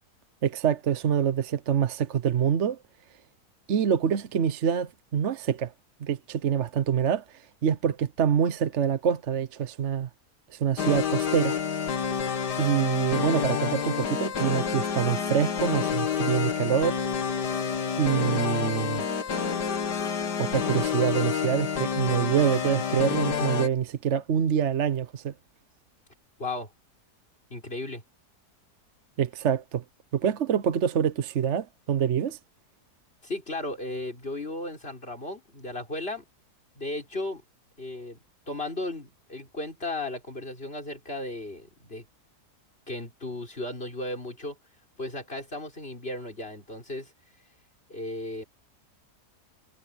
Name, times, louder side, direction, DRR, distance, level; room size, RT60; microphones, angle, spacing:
voice 1, 0.4-2.8 3.7-5.7 6.0-10.1 10.5-11.5 12.6-17.0 18.0-19.0 20.4-25.3 29.2-29.8 30.1-32.4, right 8 dB, 50° right, 1.0 m, -26 dB
sound 1, 10.8-23.7, left 7 dB, 90° left, 2.1 m, -28 dB
voice 2, 26.4-26.7 27.5-28.0 33.2-36.2 36.8-37.4 37.8-38.2 38.5-42.0 42.9-44.6 45.0-47.1 47.9-48.4, left 2 dB, 35° left, 5.0 m, -35 dB
omnidirectional pair, 1.7 m